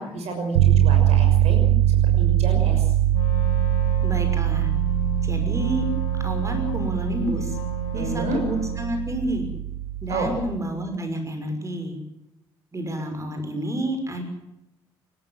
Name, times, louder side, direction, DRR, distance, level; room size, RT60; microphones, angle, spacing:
voice 1, 0.0-1.7 2.2-2.8 7.9-8.4 10.1-10.3, right 2 dB, 55° right, 4 dB, 6.4 m, -30 dB
sound 1, 0.5-10.7, right 12 dB, 70° right, 0.8 m, -22 dB
Wind instrument woodwind instrument, 3.1-9.0, right 1 dB, 75° left, 3.0 m, -34 dB
voice 2, 4.0-4.7 5.2-5.9 6.2-7.6 7.9-9.5 10.0-12.0 12.7-14.2, right 1 dB, 25° right, 5 dB, 6.0 m, -29 dB
29.0 x 14.0 x 7.8 m, 0.87 s
figure-of-eight pair, 45°, 13 cm